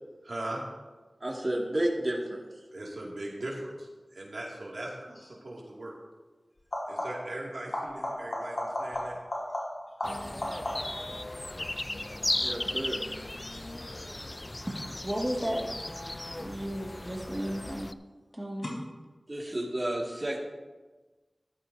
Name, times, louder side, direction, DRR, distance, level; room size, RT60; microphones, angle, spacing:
voice 1, 0.2-0.6 2.7-5.9 6.9-9.2, right 1 dB, 80° right, -3 dB, 2.3 m, -39 dB
voice 2, 1.2-2.4 12.4-13.0 19.3-20.4, right 1 dB, 40° right, -1 dB, 2.1 m, -31 dB
sound 1, 5.1-5.4 6.6-7.4 7.7-11.1 16.5-17.1 18.6-18.7, left 1 dB, 65° left, 4.2 m, -35 dB
sound 2, 10.0-17.9, left 1 dB, 30° left, 0.4 m, -36 dB
voice 3, 15.0-15.6 16.4-17.9 18.3-18.7, equal, 15° right, -2 dB, 2.0 m, -33 dB
14.0 x 11.5 x 2.7 m, 1.2 s
wide cardioid pair, 65°, 0 cm